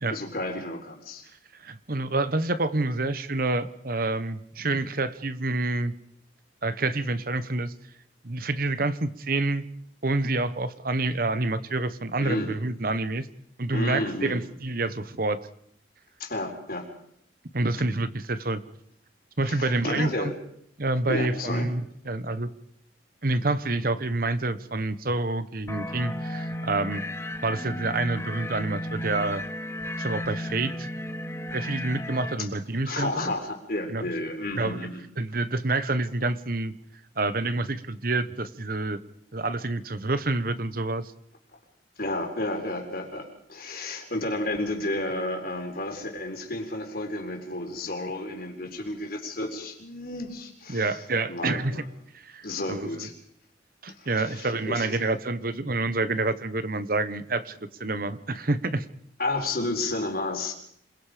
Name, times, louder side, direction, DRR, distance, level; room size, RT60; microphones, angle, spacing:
voice 1, 0.1-1.2 12.2-12.5 13.7-14.4 16.2-16.8 19.4-20.3 21.1-21.7 32.9-35.0 42.0-51.0 51.3-51.9 52.4-53.1 54.0-54.9 59.2-60.5, left 2 dB, 55° left, 3 dB, 4.2 m, -32 dB
voice 2, 1.6-5.9 6.6-7.7 8.2-9.7 10.0-13.3 13.6-15.4 17.5-18.6 19.4-20.3 20.8-22.5 23.2-27.0 27.4-29.4 30.0-30.9 31.5-33.3 33.9-34.0 34.6-34.8 35.2-36.7 37.2-39.0 39.3-41.1 50.7-51.8 52.1-53.1 53.8-58.8, right 2 dB, 50° right, 13 dB, 1.2 m, -28 dB
sound 1, 25.7-32.3, left 1 dB, 15° left, 1.2 m, -34 dB
28.0 x 21.0 x 5.2 m, 0.70 s
head